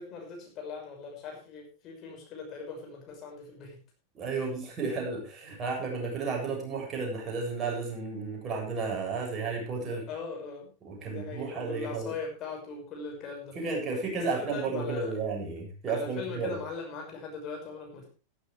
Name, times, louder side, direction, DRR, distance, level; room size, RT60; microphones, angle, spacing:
voice 1, 0.0-3.8 4.3-4.5 9.9-10.7 11.1-13.6 14.2-15.2 15.9-18.1, left 4 dB, 35° left, 1 dB, 6.1 m, -40 dB
voice 2, 4.1-10.1 10.8-12.1 13.6-16.6, right 4 dB, 25° right, 0 dB, 7.4 m, -33 dB
14.5 x 14.0 x 3.4 m, 0.32 s
figure-of-eight pair, 90°, 0 cm